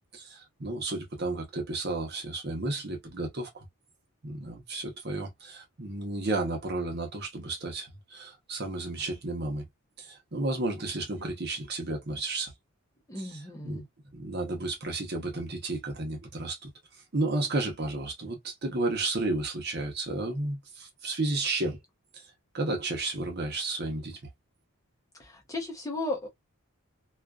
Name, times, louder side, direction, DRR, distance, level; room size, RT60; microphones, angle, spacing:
voice 1, 0.1-3.7 4.2-9.7 10.0-12.5 13.2-13.8 14.1-16.7 17.1-21.8 22.1-22.2 22.5-24.2, right 2 dB, 45° right, 0.8 m, -32 dB
voice 2, 13.1-13.9 25.2-26.3, left 2 dB, 15° left, 0.6 m, -35 dB
2.5 x 2.3 x 2.3 m
head